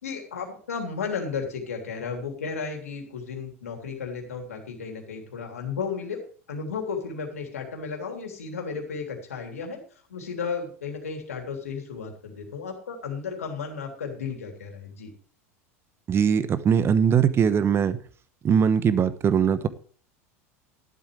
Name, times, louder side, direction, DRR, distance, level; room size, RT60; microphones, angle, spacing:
voice 1, 0.0-6.2 6.5-9.8 10.1-15.1, left 5 dB, 80° left, 2 dB, 3.2 m, -34 dB
voice 2, 16.1-18.0 18.4-19.7, right 7 dB, 30° right, 14 dB, 1.1 m, -21 dB
12.5 x 12.0 x 3.3 m, 0.44 s
figure-of-eight pair, 80°, 8 cm